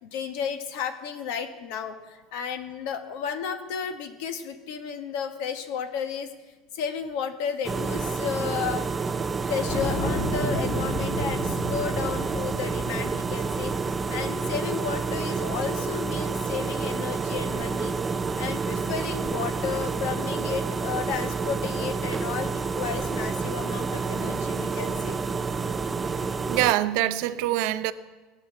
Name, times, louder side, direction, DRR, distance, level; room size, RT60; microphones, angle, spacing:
voice 1, 0.0-6.3 6.7-8.9 9.5-13.7 14.1-17.9 18.4-25.2, left 7 dB, 65° left, 1.5 m, -33 dB
sound 1, 7.6-26.7, right 4 dB, 15° right, 0.4 m, -29 dB
sound 2, 9.7-14.4, equal, 30° left, 2.9 m, -32 dB
voice 2, 26.5-27.9, right 15 dB, 60° right, 0.6 m, -24 dB
18.5 x 8.7 x 7.4 m
cardioid pair, 175°, 0 cm